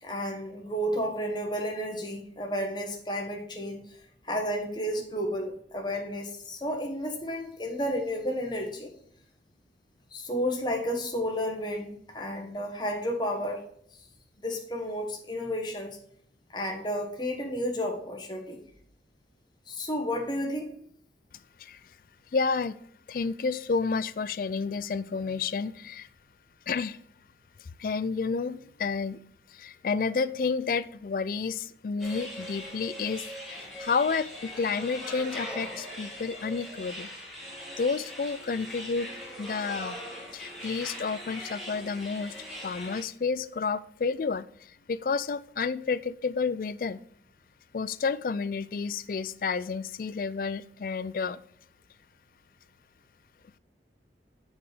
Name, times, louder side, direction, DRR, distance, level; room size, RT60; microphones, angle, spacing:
voice 1, 0.0-4.0 4.2-8.9 10.1-13.6 14.4-16.0 16.5-18.6 19.7-20.7, equal, 25° left, 1 dB, 1.4 m, -32 dB
voice 2, 22.3-22.7 23.1-26.1 26.7-27.0 27.8-29.2 29.5-37.1 37.8-39.1 39.4-40.0 40.3-42.3 42.6-47.0 47.7-51.4, left 5 dB, 50° left, 16 dB, 0.3 m, -30 dB
sound 1, 32.0-43.0, equal, ahead, 2.2 m, -41 dB
7.3 x 4.8 x 5.0 m, 0.64 s
head